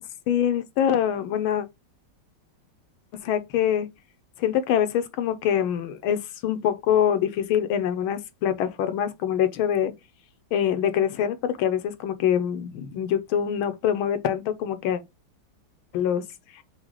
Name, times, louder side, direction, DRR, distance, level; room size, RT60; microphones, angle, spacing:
voice 1, 0.3-1.7 3.2-3.9 4.4-9.9 10.5-15.0 15.9-16.2, left 9 dB, 80° left, 1.5 m, -24 dB
5.0 x 2.3 x 4.6 m
omnidirectional pair, 2.3 m